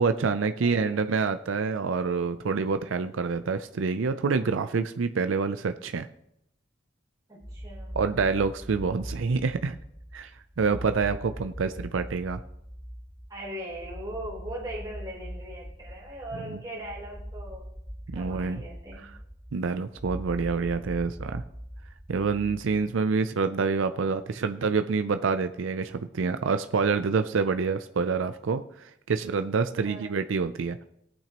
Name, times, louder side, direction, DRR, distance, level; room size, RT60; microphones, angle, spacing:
voice 1, 0.0-6.1 7.9-9.8 10.1-10.3 10.6-12.4 16.5-16.6 18.1-18.6 19.0-19.1 19.5-21.4 22.1-30.8, right 5 dB, 85° right, 9 dB, 0.5 m, -27 dB
voice 2, 0.6-1.1 7.3-8.0 10.9-11.0 13.3-17.7 18.1-19.1 22.7-23.2 29.8-30.1, right 1 dB, 20° right, -6 dB, 3.6 m, -40 dB
sound 1, 7.4-23.0, equal, 5° left, 1.1 m, -41 dB
19.0 x 8.9 x 3.0 m, 0.81 s
head